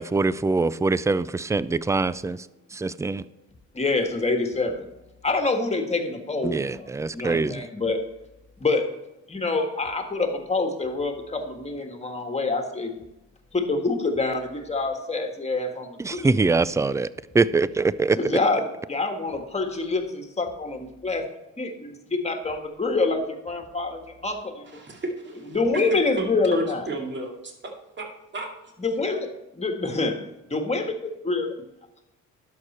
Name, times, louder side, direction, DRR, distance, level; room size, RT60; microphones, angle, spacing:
voice 1, 0.0-2.4 2.7-3.2 6.4-7.6 16.0-17.1 17.3-18.2, right 3 dB, 10° right, 17 dB, 0.3 m, -23 dB
voice 2, 3.7-4.9 5.2-8.0 8.6-8.9 9.3-13.0 13.5-16.3 18.1-21.2 21.6-24.8 25.5-26.9 28.8-30.2 30.5-30.8 31.3-31.5, left 3 dB, 20° left, 5 dB, 1.7 m, -26 dB
voice 3, 24.7-25.6 25.9-26.3 26.5-27.5 28.0-28.1 28.3-28.5, right 2 dB, 35° right, 1 dB, 2.4 m, -33 dB
11.0 x 6.7 x 4.3 m, 0.94 s
cardioid pair, 90°, 30 cm